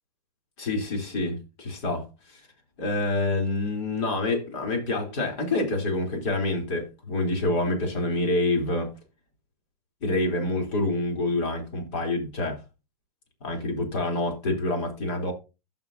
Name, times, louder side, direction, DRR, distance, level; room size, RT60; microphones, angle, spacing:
voice 1, 0.6-2.4 2.8-8.9 10.0-12.6 13.4-15.3, left 2 dB, 45° left, 3.5 m, -27 dB
15.0 x 5.8 x 2.7 m
hypercardioid pair, 155°, 21 cm